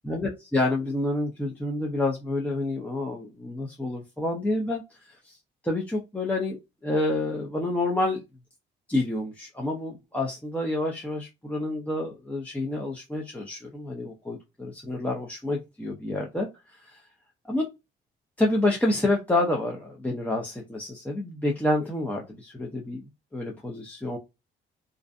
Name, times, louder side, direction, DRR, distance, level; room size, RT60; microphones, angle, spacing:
voice 1, 0.0-4.8 5.2-5.4 5.6-8.2 8.9-16.5 16.8-17.0 17.5-17.7 18.4-23.0 23.3-24.2, left 2 dB, 5° left, -1 dB, 0.6 m, -28 dB
2.5 x 2.1 x 2.5 m, 0.24 s
cardioid pair, 90°, 20 cm